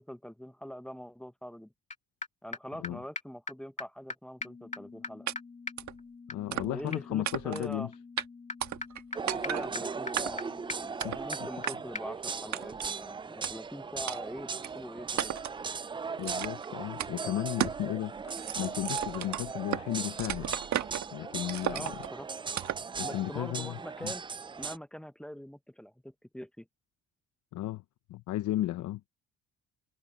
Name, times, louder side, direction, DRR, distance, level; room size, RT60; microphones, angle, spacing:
voice 1, 0.0-1.7 2.4-5.3 6.5-7.9 9.3-10.4 10.7-15.4 21.7-22.3 23.0-24.2 24.6-26.7, equal, 5° left, 1.0 m, -43 dB
sound 1, 1.9-2.0 2.2-2.3 2.5-2.6 2.8-2.9 3.2-3.3 3.5-3.6 3.8-3.9 4.1-4.2 4.4-11.7 12.0-12.1, left 3 dB, 25° left, 2.2 m, -42 dB
sound 2, 5.3-5.4 5.8-6.0 6.5-6.9 7.2-7.7 8.2-8.3 8.6-9.0 9.3-9.7 10.2-10.5 11.0-11.2 11.7-11.8 12.5-12.9 13.4-13.5 14.1-14.2 14.6-14.7 15.2-15.6 16.2-16.7 17.0-17.1 17.6-17.8 18.2-19.9 20.2-21.1 21.5-22.1 22.6-22.9, right 11 dB, 70° right, 1.5 m, -34 dB
voice 2, 6.3-7.9 11.0-11.3 16.2-18.1 18.6-20.6 21.1-22.0 23.0-23.8 24.0-24.1 27.5-27.8 28.1-29.0, left 14 dB, 80° left, 0.7 m, -34 dB
sound 3, 9.1-24.8, right 5 dB, 15° right, 0.3 m, -38 dB
cardioid pair, 90°, 30 cm